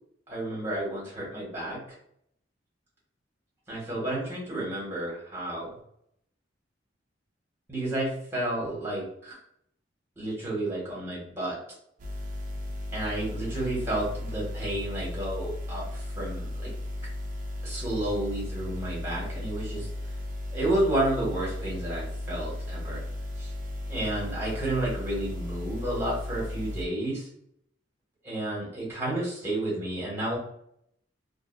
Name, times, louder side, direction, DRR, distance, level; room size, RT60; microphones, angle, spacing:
voice 1, 0.3-1.8 3.7-5.8 7.7-9.4 10.2-11.6 12.9-16.7 17.6-19.9 20.5-23.0 23.4-23.5 23.9-27.3 28.2-30.4, right 1 dB, 10° right, -5 dB, 1.2 m, -31 dB
sound 1, 12.0-26.8, left 1 dB, 45° right, 0.4 m, -35 dB
2.6 x 2.6 x 2.5 m, 0.71 s
head